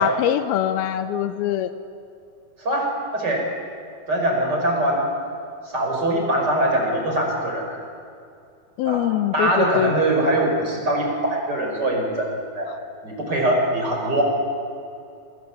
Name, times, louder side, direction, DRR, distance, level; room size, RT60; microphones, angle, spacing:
voice 1, 0.0-1.7 8.8-9.9 12.7-12.8, left 11 dB, 80° left, 11 dB, 2.7 m, -23 dB
voice 2, 2.6-3.5 4.1-5.0 5.7-7.8 8.9-9.0 9.3-12.7 13.0-14.2, right 1 dB, 25° right, 1 dB, 5.7 m, -22 dB
28.0 x 22.0 x 8.5 m, 2.6 s
omnidirectional pair, 4.5 m